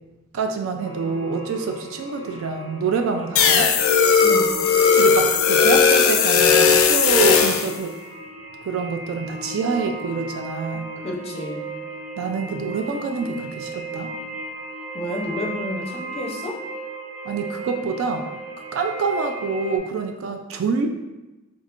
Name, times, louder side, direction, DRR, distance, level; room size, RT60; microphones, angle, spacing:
voice 1, 0.3-3.7 5.0-8.0 8.6-10.9 12.2-14.1 17.2-18.3 18.7-20.9, right 5 dB, 70° right, 5 dB, 0.3 m, -26 dB
sound 1, 0.8-19.8, right 2 dB, 90° right, 0.8 m, -36 dB
sound 2, 3.4-7.7, left 6 dB, 75° left, 0.4 m, -17 dB
voice 2, 4.2-4.6 11.0-11.7 14.9-16.6, left 1 dB, 30° left, -1 dB, 0.6 m, -30 dB
3.1 x 2.4 x 3.5 m, 1.1 s
head